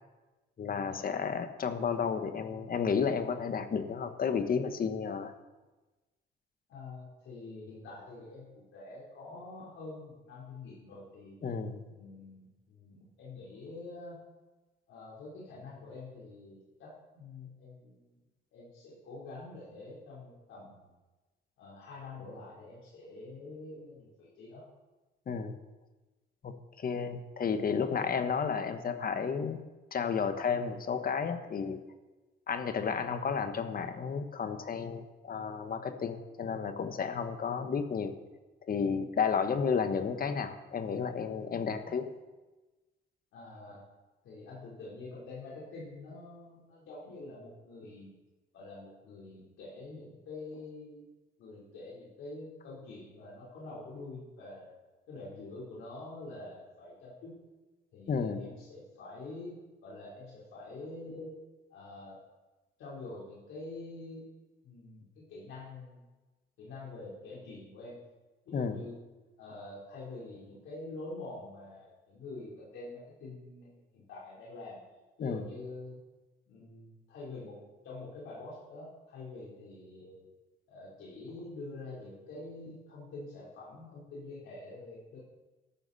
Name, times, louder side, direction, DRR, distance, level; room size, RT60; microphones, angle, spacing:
voice 1, 0.6-5.3 11.4-11.8 25.3-25.6 26.4-29.6 29.9-31.8 32.5-38.1 38.7-42.0 58.1-58.5 68.5-68.8 75.2-75.4, left 6 dB, 45° left, 8 dB, 1.3 m, -32 dB
voice 2, 6.7-11.3 11.9-14.2 14.9-18.2 18.5-20.9 21.6-24.6 39.5-39.7 41.8-42.0 43.3-43.8 44.2-48.1 48.5-51.0 51.4-54.8 55.1-57.4 57.9-61.3 61.7-62.2 62.8-64.2 64.6-66.0 66.6-68.0 68.5-69.0 69.4-74.8 75.2-76.0 76.5-80.3 80.7-85.2, left 2 dB, 85° left, -6 dB, 3.9 m, -46 dB
13.5 x 12.0 x 4.2 m, 1.2 s
cardioid pair, 90°, 20 cm